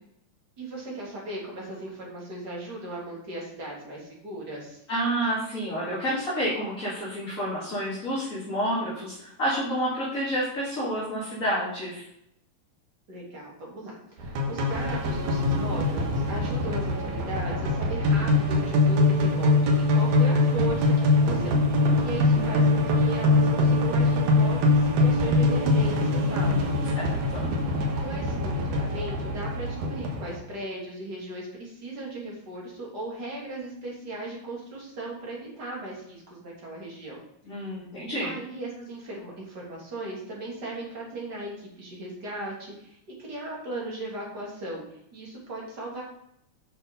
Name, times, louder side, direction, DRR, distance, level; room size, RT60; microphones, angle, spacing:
voice 1, 0.6-4.8 13.1-21.6 22.0-26.7 27.9-37.2 38.2-46.0, right 2 dB, 30° right, -4 dB, 3.3 m, -37 dB
voice 2, 4.9-12.0 22.4-22.5 26.2-26.7 26.9-27.5 37.4-38.4, equal, 25° left, -8 dB, 2.7 m, -29 dB
sound 1, 14.2-30.4, left 2 dB, 70° right, 2.5 m, -23 dB
8.5 x 6.2 x 5.4 m, 0.75 s
omnidirectional pair, 3.7 m